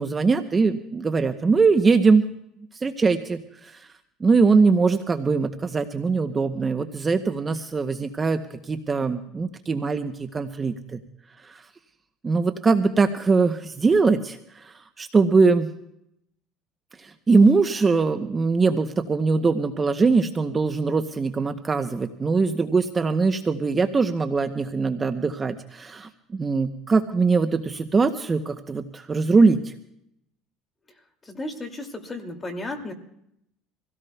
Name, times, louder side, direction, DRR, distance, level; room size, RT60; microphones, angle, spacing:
voice 1, 0.0-2.2 2.7-3.9 4.2-11.0 11.4-11.6 12.2-15.7 17.0-29.7, right 4 dB, 25° right, 8 dB, 0.8 m, -22 dB
voice 2, 31.2-32.9, left 2 dB, 20° left, 4 dB, 2.5 m, -34 dB
26.0 x 17.0 x 2.3 m, 0.77 s
supercardioid pair, 110°, 0 cm